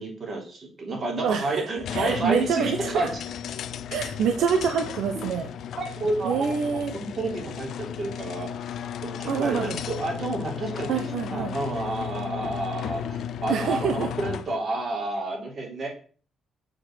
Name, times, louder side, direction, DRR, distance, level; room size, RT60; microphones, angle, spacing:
voice 1, 0.0-3.2 5.8-8.5 9.0-11.0 11.3-15.9, right 2 dB, 45° right, 1 dB, 3.4 m, -30 dB
voice 2, 1.2-1.6 1.9-2.9 3.9-5.5 6.2-6.9 9.3-9.8 10.9-11.6 13.5-14.1, right 7 dB, 75° right, 6 dB, 0.9 m, -26 dB
sound 1, 1.8-14.6, left 9 dB, 70° left, 0.5 m, -35 dB
7.7 x 4.5 x 6.2 m, 0.41 s
cardioid pair, 90°, 0 cm